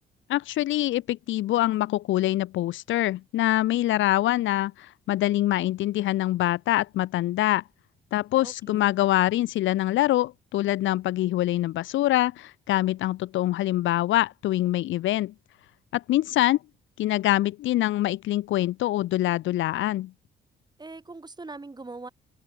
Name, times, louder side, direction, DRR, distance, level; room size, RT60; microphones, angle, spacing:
voice 1, 0.3-7.6 8.1-15.3 15.9-16.6 17.0-20.1, left 15 dB, 75° left, 0.6 m, -24 dB
voice 2, 8.4-8.9 20.8-22.1, right 3 dB, 20° right, 4.2 m, -41 dB
cardioid pair, 90°, 20 cm